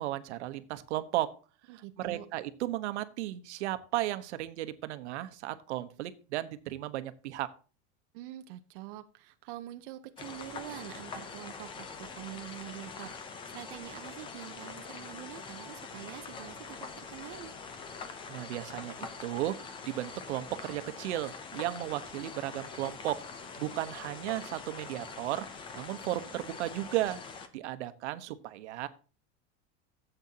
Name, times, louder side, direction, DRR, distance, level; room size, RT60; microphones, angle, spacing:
voice 1, 0.0-1.3 1.7-7.5 18.3-23.2 23.6-27.3 27.5-28.9, right 14 dB, 80° right, 1.1 m, -35 dB
voice 2, 1.7-2.3 8.1-13.1 13.5-17.5, right 14 dB, 50° right, 0.8 m, -45 dB
sound 1, 10.2-27.5, left 5 dB, 15° left, 0.7 m, -44 dB
13.5 x 8.1 x 2.8 m
supercardioid pair, 175°, 34 cm